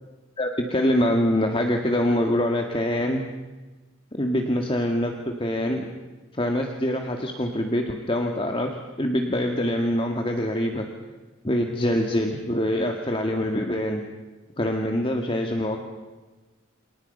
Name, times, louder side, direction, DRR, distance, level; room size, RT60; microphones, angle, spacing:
voice 1, 0.4-3.2 4.1-5.1 5.4-5.9 6.3-8.7 9.0-10.9 11.4-14.0 14.6-15.8, left 1 dB, 25° left, 3 dB, 2.0 m, -24 dB
30.0 x 28.0 x 5.6 m, 1.2 s
head